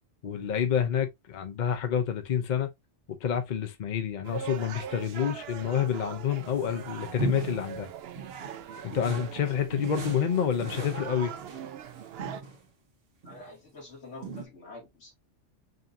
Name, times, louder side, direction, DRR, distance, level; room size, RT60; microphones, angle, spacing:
voice 1, 0.2-2.7 3.1-7.9 8.8-11.3, left 8 dB, 50° left, 0.6 m, -28 dB
sound 1, 4.2-12.4, right 9 dB, 65° right, 0.7 m, -41 dB
sound 2, 6.3-7.8 8.1-9.4 9.7-12.6 13.2-13.5 14.2-14.5, right 4 dB, 85° right, 1.6 m, -38 dB
voice 2, 10.7-11.3 13.2-15.1, left 2 dB, 80° left, 2.3 m, -46 dB
5.1 x 2.6 x 2.6 m
omnidirectional pair, 1.2 m